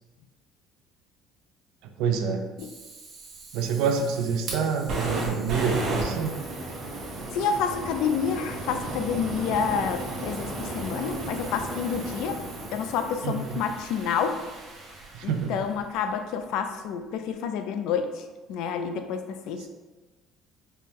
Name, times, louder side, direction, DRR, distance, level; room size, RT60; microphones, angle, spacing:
voice 1, 1.8-2.5 3.5-6.3 13.2-13.6 15.1-15.6 19.6-19.7, right 6 dB, 75° right, 5 dB, 0.4 m, -27 dB
Fire, 2.6-15.7, right 2 dB, 50° right, 0.9 m, -35 dB
voice 2, 7.3-12.4 12.7-14.4 15.2-18.2 18.5-19.7, left 6 dB, 70° left, 7 dB, 0.3 m, -29 dB
4.2 x 2.1 x 3.5 m, 1.2 s
cardioid pair, 155°, 0 cm